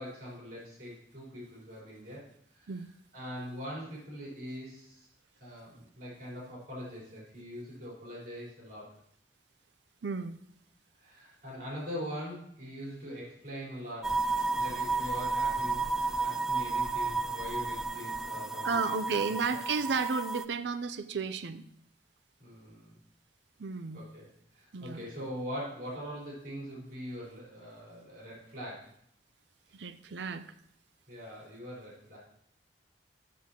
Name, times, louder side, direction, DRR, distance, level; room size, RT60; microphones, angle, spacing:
voice 1, 0.0-2.2 2.5-2.8 3.1-5.1 5.4-8.9 11.0-14.2 14.6-19.0 19.5-19.8 22.4-22.9 23.9-24.3 24.6-28.9 31.1-32.2, equal, 55° right, -7 dB, 4.5 m, -42 dB
voice 2, 10.0-10.4 18.6-21.6 23.6-24.0 24.7-25.0 29.7-30.5, right 5 dB, 80° right, 12 dB, 0.5 m, -33 dB
sound 1, 14.0-20.4, right 3 dB, 5° right, 0.3 m, -32 dB
14.0 x 7.1 x 3.0 m, 0.69 s
head